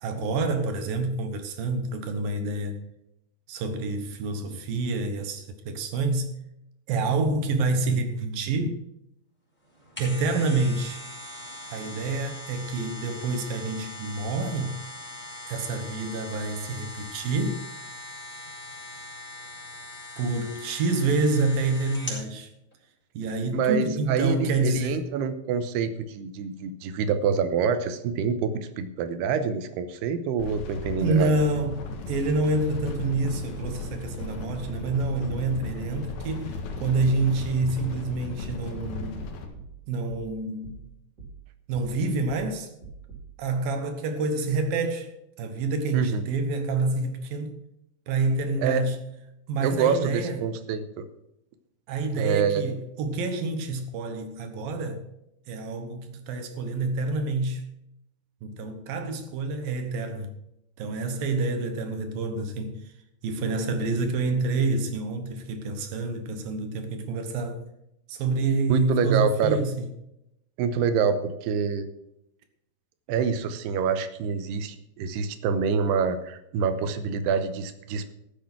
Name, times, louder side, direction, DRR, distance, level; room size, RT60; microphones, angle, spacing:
voice 1, 0.0-2.8 3.5-6.3 6.9-8.8 10.0-11.0 11.7-14.8 15.5-17.6 20.2-22.5 23.1-25.0 31.0-39.3 39.9-40.8 41.7-42.7 43.4-47.6 48.1-49.1 49.5-50.4 51.9-55.0 55.5-57.6 58.4-60.3 60.8-62.8 63.2-67.7 68.1-69.9, right 3 dB, 70° right, 2.7 m, -27 dB
sound 1, 9.7-22.3 22.7-22.8, left 1 dB, 5° left, 4.9 m, -41 dB
voice 2, 23.5-31.3 45.9-46.2 48.6-48.8 49.6-51.1 52.2-52.7 68.7-69.6 70.6-71.9 73.1-78.1, right 6 dB, 85° right, 3.0 m, -26 dB
sound 2, 30.4-39.5, left 3 dB, 70° left, 3.4 m, -36 dB
sound 3, 38.4-43.4, right 4 dB, 25° right, 3.9 m, -46 dB
14.0 x 7.7 x 6.0 m
omnidirectional pair, 4.6 m